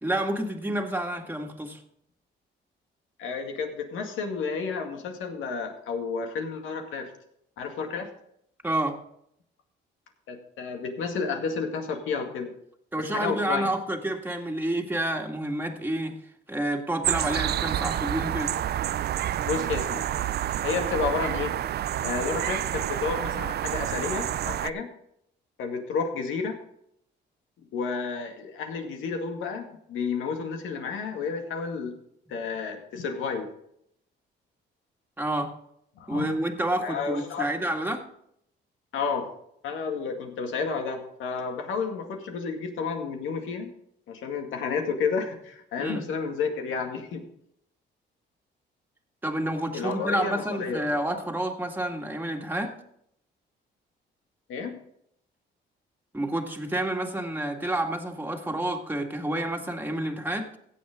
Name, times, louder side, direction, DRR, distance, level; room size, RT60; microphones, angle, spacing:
voice 1, 0.0-1.8 8.6-9.0 12.9-16.2 16.5-18.6 35.2-35.5 36.1-38.1 45.8-46.0 49.2-52.7 56.1-60.5, right 1 dB, 10° right, 2 dB, 1.9 m, -29 dB
voice 2, 3.2-7.1 7.6-8.1 10.3-12.5 13.1-13.7 19.4-20.0 20.6-21.5 22.0-24.9 25.6-26.6 27.7-31.9 32.3-33.5 36.0-36.3 36.8-37.5 38.9-39.3 39.6-43.7 44.1-47.2 49.7-50.9 54.5-54.7, left 5 dB, 85° left, 4 dB, 2.1 m, -31 dB
sound 1, 17.0-24.7, right 11 dB, 55° right, 0.4 m, -29 dB
16.0 x 7.5 x 3.7 m, 0.72 s
cardioid pair, 90°, 20 cm